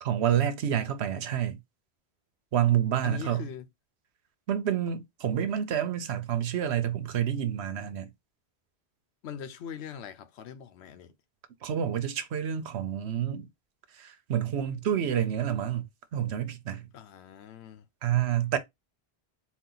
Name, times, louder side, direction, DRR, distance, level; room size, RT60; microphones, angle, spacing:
voice 1, 0.0-1.6 2.5-3.5 4.5-8.1 11.6-13.5 14.0-16.9 18.0-18.6, right 10 dB, 85° right, 1.0 m, -28 dB
voice 2, 3.0-3.7 9.2-11.1 16.9-17.8, left 7 dB, 80° left, 0.9 m, -41 dB
4.2 x 2.3 x 3.8 m
omnidirectional pair, 1.1 m